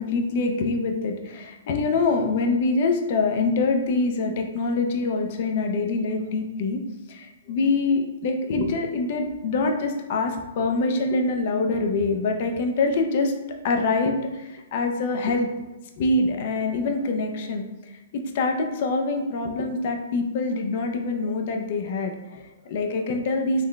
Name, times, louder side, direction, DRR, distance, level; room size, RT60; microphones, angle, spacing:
voice 1, 0.0-6.8 7.1-13.3 13.6-15.5 16.0-23.6, left 3 dB, 35° left, 4 dB, 0.4 m, -25 dB
3.7 x 2.1 x 3.3 m, 1.1 s
hypercardioid pair, 180°, 0 cm